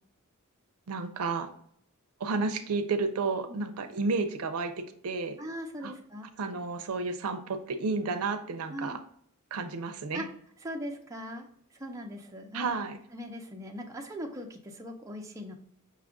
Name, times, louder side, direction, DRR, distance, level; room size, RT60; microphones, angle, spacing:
voice 1, 0.9-1.5 2.2-5.4 5.8-5.9 6.4-9.0 9.5-10.2 12.5-13.0, right 4 dB, 80° right, 9 dB, 0.5 m, -31 dB
voice 2, 5.4-6.3 8.7-9.0 10.1-10.3 10.6-11.5 11.7-12.7 13.1-15.5, equal, 15° right, 1 dB, 0.5 m, -40 dB
5.7 x 2.4 x 3.6 m, 0.65 s
head